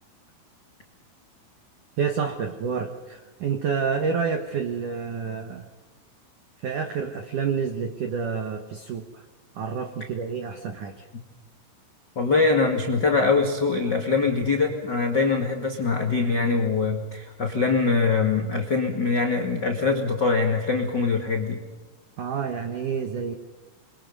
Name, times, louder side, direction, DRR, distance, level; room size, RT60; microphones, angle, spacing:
voice 1, 2.0-5.7 6.6-9.2 9.6-11.1 22.2-23.3, right 6 dB, 80° right, 6 dB, 1.8 m, -29 dB
voice 2, 12.1-21.6, left 4 dB, 85° left, 2 dB, 0.9 m, -23 dB
28.0 x 24.0 x 5.4 m, 1.2 s
omnidirectional pair, 5.7 m